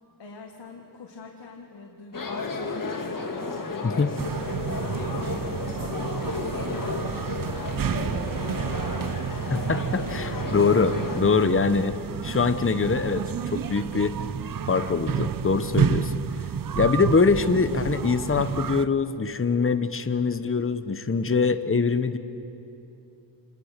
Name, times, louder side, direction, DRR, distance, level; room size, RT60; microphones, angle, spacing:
voice 1, 0.2-3.1 3.7-9.2, left 3 dB, 80° left, 1 dB, 1.8 m, -46 dB
sound 1, 2.1-11.2, left 3 dB, 50° left, 2.3 m, -33 dB
sound 2, 4.2-18.9, right 8 dB, 55° right, 0.6 m, -30 dB
voice 2, 9.5-12.0 12.2-14.2 14.7-16.2 16.8-22.2, left 4 dB, 30° left, 10 dB, 1.0 m, -23 dB
27.5 x 20.5 x 6.7 m, 2.8 s
wide cardioid pair, 75°, 41 cm